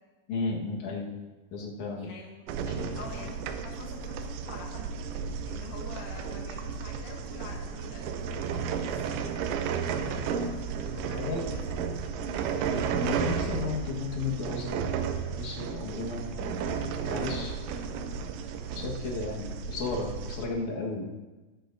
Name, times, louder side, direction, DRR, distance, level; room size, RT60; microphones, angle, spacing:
voice 1, 0.3-1.1 1.5-2.1 2.7-3.0 10.0-10.2 11.1-11.4 12.9-15.0 15.3-16.8 17.0-17.5 18.7-21.0, left 4 dB, 60° left, -2 dB, 2.0 m, -34 dB
voice 2, 2.0-2.5 2.8-3.4 3.6-4.9 5.2-9.4 10.0-12.6, left 4 dB, 85° left, 0 dB, 1.7 m, -47 dB
sound 1, 2.5-20.5, right 6 dB, 80° right, 3.2 m, -33 dB
20.5 x 9.6 x 2.7 m, 1.2 s
omnidirectional pair, 5.6 m